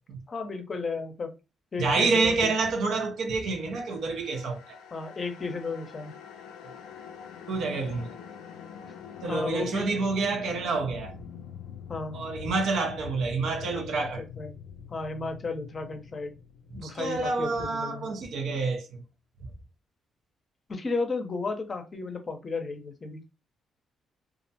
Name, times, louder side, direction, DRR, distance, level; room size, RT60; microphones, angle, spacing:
voice 1, 0.3-1.3 1.7-2.6 4.9-6.1 9.2-9.9 11.9-12.2 13.7-14.5 14.9-16.3 16.8-18.1 20.7-23.2, left 3 dB, 40° left, 0.6 m, -34 dB
voice 2, 1.8-4.8 7.5-8.1 9.2-11.1 12.1-14.2 16.7-19.0, right 3 dB, 70° right, 0.5 m, -28 dB
sound 1, 3.3-18.5, left 7 dB, 90° left, 0.3 m, -45 dB
2.4 x 2.0 x 2.7 m
supercardioid pair, 70°, 0 cm